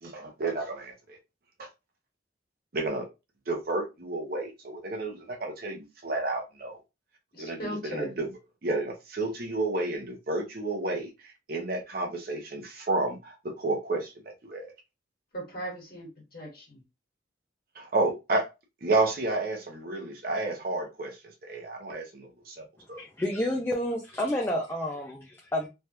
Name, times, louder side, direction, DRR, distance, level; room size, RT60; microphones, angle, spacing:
voice 1, 0.0-1.2 1.6-1.7 2.7-3.1 3.5-6.8 7.4-8.3 8.6-14.7 17.7-18.5 18.8-23.0, right 2 dB, 50° right, 0.7 m, -31 dB
voice 2, 7.3-8.2 15.3-16.8, right 1 dB, 50° left, 1.6 m, -38 dB
voice 3, 23.0-25.7, left 1 dB, 10° left, 0.4 m, -30 dB
3.2 x 2.3 x 2.8 m
head